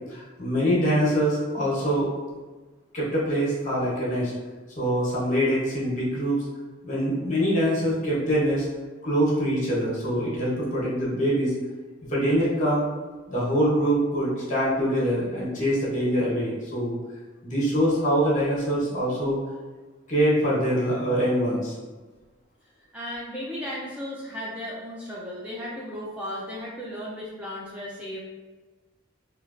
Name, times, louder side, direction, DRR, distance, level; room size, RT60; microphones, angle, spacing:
voice 1, 0.0-2.1 2.9-4.3 4.8-6.4 6.8-8.7 9.0-11.5 12.1-12.9 13.3-17.0 17.4-19.4 20.1-21.7, equal, 40° left, -6 dB, 0.9 m, -24 dB
voice 2, 22.9-28.2, left 1 dB, 5° right, -6 dB, 0.3 m, -35 dB
3.2 x 2.3 x 2.4 m, 1.3 s
head